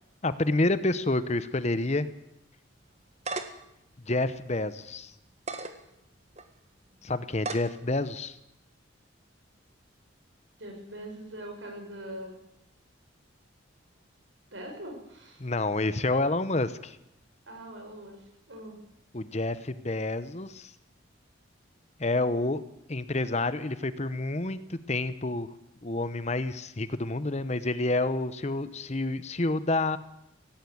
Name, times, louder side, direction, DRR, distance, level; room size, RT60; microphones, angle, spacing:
voice 1, 0.2-2.1 4.1-5.1 7.0-8.4 15.4-17.0 19.1-20.7 22.0-25.5 25.8-30.0, left 2 dB, 35° left, 14 dB, 0.9 m, -29 dB
sound 1, 2.9-3.7 4.2-4.3 5.3-5.7 6.4-6.5 7.4-7.7, right 3 dB, 35° right, 1.7 m, -34 dB
voice 2, 10.6-12.4 14.5-15.4 17.5-18.8, right 1 dB, 70° right, 3 dB, 6.4 m, -42 dB
17.5 x 16.5 x 9.6 m, 0.82 s
head